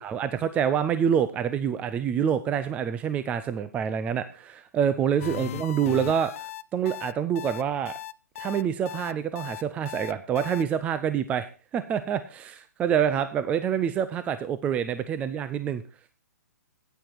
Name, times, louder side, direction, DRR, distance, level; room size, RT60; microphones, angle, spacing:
voice 1, 0.0-7.9 8.4-11.5 11.7-15.8, right 8 dB, 15° right, 12 dB, 0.5 m, -27 dB
cause for alarm, 5.2-10.6, left 13 dB, 50° left, 0.5 m, -37 dB
9.1 x 9.1 x 4.6 m, 0.33 s
hypercardioid pair, 150°, 9 cm